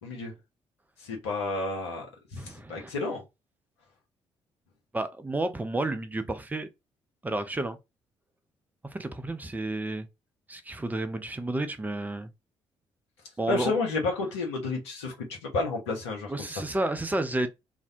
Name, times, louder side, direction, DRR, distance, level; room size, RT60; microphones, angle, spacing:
voice 1, 0.0-0.3 1.0-2.1 2.3-3.2 13.5-16.3, left 3 dB, 75° left, 0.7 m, -31 dB
voice 2, 2.4-2.9 4.9-6.7 7.2-7.8 8.9-10.1 10.5-12.3 13.4-13.7 16.3-17.5, right 2 dB, 10° right, 0.4 m, -31 dB
2.4 x 2.1 x 2.5 m
figure-of-eight pair, 40°, 14 cm